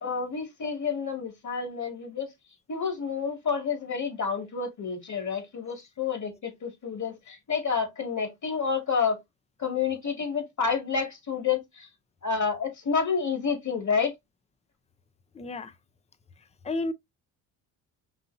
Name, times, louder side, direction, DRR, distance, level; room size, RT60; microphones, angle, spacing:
voice 1, 0.0-2.3 2.7-9.2 9.6-11.9 12.2-14.1, left 5 dB, 40° left, 2.1 m, -29 dB
voice 2, 15.3-15.7 16.6-16.9, left 2 dB, 15° left, 0.6 m, -31 dB
5.5 x 2.6 x 2.6 m
supercardioid pair, 70°, 45 cm